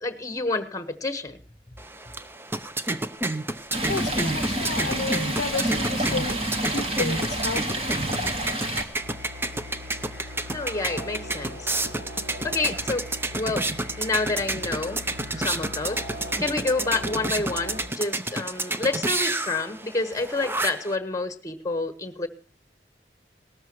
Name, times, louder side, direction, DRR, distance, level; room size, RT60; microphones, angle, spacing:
voice 1, 0.0-1.4 10.5-11.7 12.4-13.1 13.3-13.7 14.0-15.0 15.3-16.0 16.4-22.3, left 3 dB, 20° left, 9 dB, 1.2 m, -28 dB
sound 1, 1.8-21.0, right 2 dB, 15° right, 0.6 m, -30 dB
Stream, 3.7-8.8, right 1 dB, 35° right, 2.3 m, -28 dB
voice 2, 3.9-6.4 6.7-7.6, left 4 dB, 70° left, 12 dB, 0.7 m, -31 dB
sound 2, 8.9-17.8, left 1 dB, 85° right, 5.9 m, -40 dB
18.5 x 13.5 x 3.1 m, 0.36 s
head